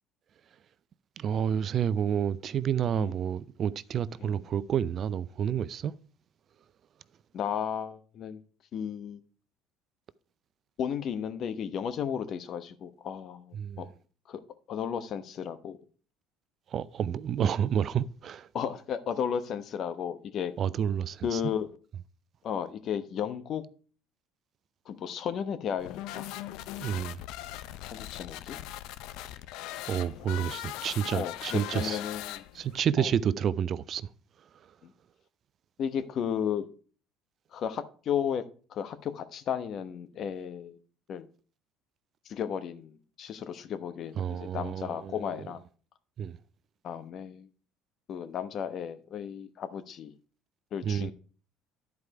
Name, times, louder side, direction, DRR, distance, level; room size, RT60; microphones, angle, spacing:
voice 1, 1.2-5.9 13.5-13.8 16.7-18.5 20.6-21.4 26.8-27.2 29.9-32.0 32.5-34.1 44.2-45.5 46.2-46.4 50.8-51.1, right 8 dB, 50° right, 0.4 m, -29 dB
voice 2, 7.3-8.4 8.7-9.2 10.8-13.9 14.3-14.4 14.7-15.8 18.5-20.5 21.2-21.7 22.4-23.6 24.9-26.3 27.8-28.6 31.1-32.4 33.0-33.1 34.8-34.9 35.8-36.7 37.5-38.4 38.7-40.8 41.1-41.2 42.3-45.6 46.8-47.5 48.1-50.1 50.7-51.1, left 8 dB, 55° left, 0.9 m, -34 dB
sound 1, 25.8-32.8, left 14 dB, 70° left, 0.5 m, -40 dB
11.0 x 4.8 x 4.8 m
hypercardioid pair, 75°, 0 cm